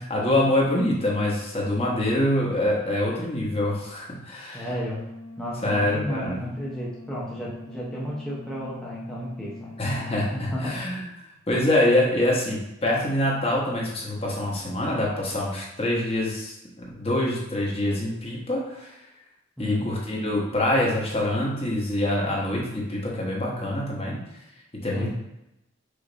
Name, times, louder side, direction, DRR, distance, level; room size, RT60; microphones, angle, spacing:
voice 1, 0.0-4.7 5.6-6.4 9.8-11.0 11.5-16.5 16.9-18.9 19.6-24.2 24.8-25.1, left 1 dB, 30° left, -3 dB, 1.1 m, -25 dB
voice 2, 4.5-5.1 5.4-9.7 10.3-10.8 19.6-19.9 24.9-25.1, equal, 5° left, -7 dB, 0.8 m, -33 dB
sound 1, 5.0-10.1, left 2 dB, 65° left, 0.7 m, -43 dB
5.0 x 2.6 x 3.9 m, 0.88 s
head